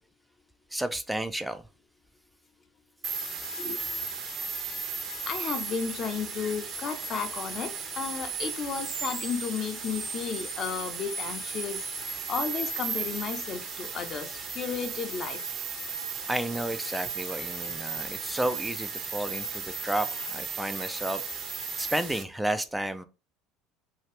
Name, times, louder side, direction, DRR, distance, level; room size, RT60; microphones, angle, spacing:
voice 1, 0.7-1.6 16.3-21.2 21.5-23.0, right 1 dB, 5° right, 0.4 m, -32 dB
sound 1, 3.0-22.2, right 4 dB, 40° right, 0.9 m, -35 dB
voice 2, 5.3-15.4, left 6 dB, 45° left, 0.7 m, -33 dB
2.8 x 2.4 x 3.2 m
supercardioid pair, 90°, 0 cm